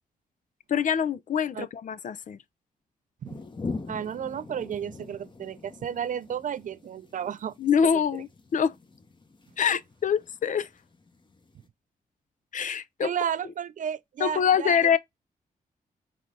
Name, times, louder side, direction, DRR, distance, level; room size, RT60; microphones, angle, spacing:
voice 1, 0.7-2.4 7.6-8.7 9.6-10.7 12.5-13.1 14.2-15.0, left 7 dB, 55° left, 0.5 m, -25 dB
sound 1, 3.2-11.7, left 3 dB, 30° left, 1.0 m, -43 dB
voice 2, 3.9-7.5 13.0-15.0, right 8 dB, 60° right, 0.4 m, -32 dB
3.9 x 3.6 x 3.2 m
cardioid pair, 70°, 15 cm